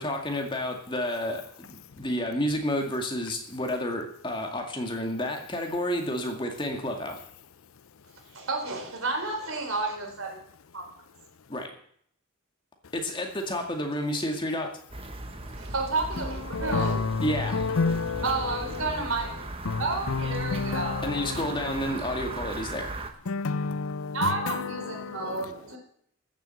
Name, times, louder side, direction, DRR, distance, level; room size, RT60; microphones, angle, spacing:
voice 1, 0.0-7.2 11.5-11.7 12.9-14.7 17.2-17.6 21.0-22.9, left 1 dB, 25° left, 2.1 m, -30 dB
voice 2, 8.3-10.4 10.7-10.8 15.6-17.0 18.2-19.3 19.8-21.1 24.1-25.8, right 3 dB, 80° right, 3.9 m, -31 dB
sound 1, 14.9-23.1, right 2 dB, 25° right, 1.1 m, -38 dB
voice 3, 16.2-19.0 19.6-22.1 23.3-25.5, left 4 dB, 75° left, 0.6 m, -30 dB
14.0 x 7.5 x 7.7 m
head